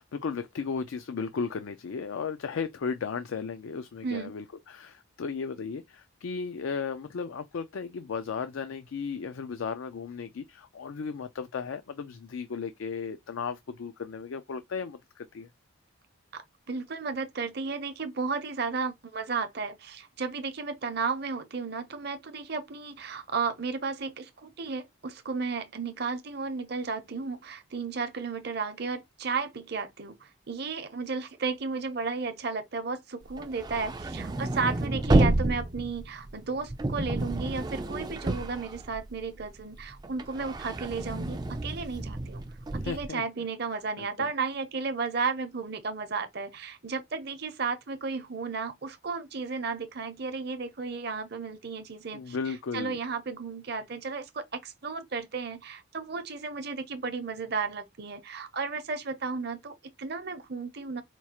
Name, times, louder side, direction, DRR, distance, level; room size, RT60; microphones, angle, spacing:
voice 1, 0.0-15.5 42.7-43.2 44.0-44.3 52.1-53.0, left 5 dB, 75° left, 0.4 m, -35 dB
voice 2, 16.3-42.4 42.7-52.4 52.7-61.0, right 4 dB, 50° right, 0.7 m, -34 dB
sound 1, 33.3-39.4 39.8-43.1, right 2 dB, 20° right, 0.3 m, -30 dB
4.4 x 2.3 x 2.8 m
head